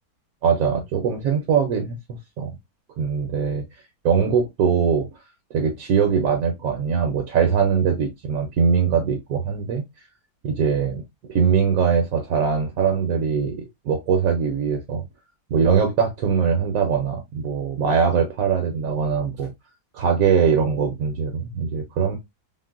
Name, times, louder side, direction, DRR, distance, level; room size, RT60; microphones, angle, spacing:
voice 1, 0.4-2.0 2.4-2.5 3.0-3.6 4.0-5.1 5.5-9.8 10.4-11.0 11.3-15.0 15.5-19.5 19.9-22.2, right 6 dB, 70° right, 1.0 m, -21 dB
3.7 x 2.1 x 2.3 m
omnidirectional pair, 1.7 m